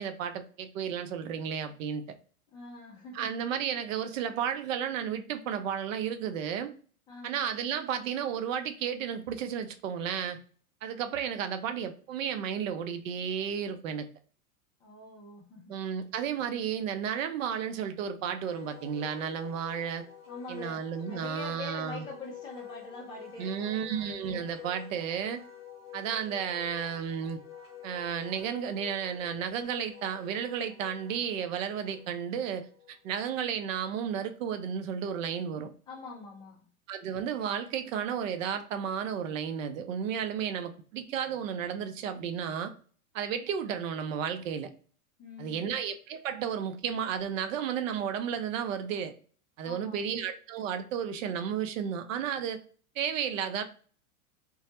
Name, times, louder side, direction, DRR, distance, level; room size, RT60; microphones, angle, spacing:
voice 1, 0.0-2.0 3.1-6.7 7.2-10.4 10.8-14.1 15.7-20.0 20.5-22.0 23.4-25.4 25.9-27.4 27.8-35.7 36.9-42.7 43.1-44.7 45.4-49.1 49.6-52.6 53.0-53.6, right 8 dB, 60° right, 0.6 m, -33 dB
voice 2, 2.5-3.4 7.1-7.4 14.8-15.8 20.3-23.9 35.9-36.6 45.2-45.7 49.6-50.1, left 3 dB, 10° left, 0.3 m, -44 dB
Wind instrument woodwind instrument, 18.4-33.1, left 9 dB, 35° left, 0.9 m, -48 dB
2.2 x 2.0 x 2.8 m
hypercardioid pair, 115°, 45 cm